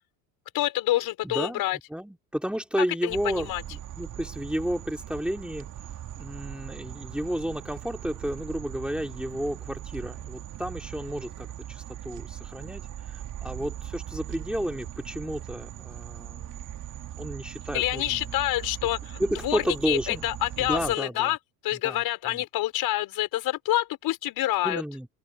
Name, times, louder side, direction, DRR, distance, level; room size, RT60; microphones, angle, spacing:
voice 1, 0.5-1.8 3.0-3.6 17.7-21.4 21.6-24.8, left 15 dB, 55° left, 5.4 m, -27 dB
voice 2, 1.2-1.6 1.9-5.7 6.2-16.6 17.2-18.3 19.2-20.3 20.6-21.4 21.8-22.0 22.3-22.4 24.6-25.1, equal, ahead, 3.6 m, -32 dB
sound 1, 3.1-21.0, right 11 dB, 45° right, 2.7 m, -40 dB
open air
hypercardioid pair, 90°, 43 cm